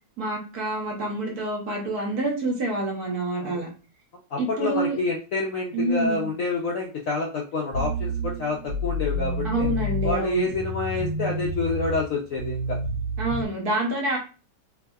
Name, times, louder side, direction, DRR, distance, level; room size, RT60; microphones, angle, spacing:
voice 1, 0.2-3.7 4.4-5.0 5.7-6.3 9.4-10.5 13.2-14.2, right 2 dB, 60° right, -1 dB, 1.4 m, -27 dB
voice 2, 4.3-9.7 10.0-12.8, left 3 dB, 70° left, -1 dB, 0.8 m, -28 dB
sound 1, 7.7-13.4, equal, 80° right, 1.6 m, -29 dB
3.5 x 2.7 x 2.3 m, 0.34 s
omnidirectional pair, 2.0 m